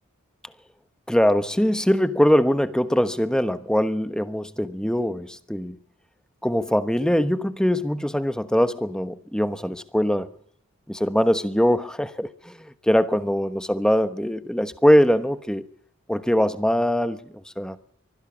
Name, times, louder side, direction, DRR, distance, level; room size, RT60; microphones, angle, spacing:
voice 1, 1.1-5.8 6.4-10.3 10.9-15.7 16.1-17.2 17.6-17.8, equal, 5° left, 11 dB, 1.1 m, -22 dB
24.5 x 16.5 x 7.2 m, 0.66 s
head